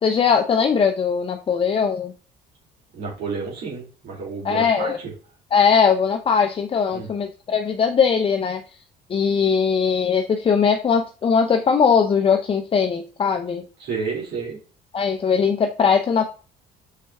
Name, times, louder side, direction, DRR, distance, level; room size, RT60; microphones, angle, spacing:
voice 1, 0.0-2.1 4.4-5.0 5.5-8.6 9.1-13.7 14.9-16.2, left 6 dB, 35° left, 5 dB, 0.7 m, -20 dB
voice 2, 2.9-5.1 6.9-7.1 13.8-14.6, right 4 dB, 70° right, -4 dB, 3.5 m, -30 dB
6.6 x 4.5 x 3.5 m, 0.37 s
cardioid pair, 110°, 17 cm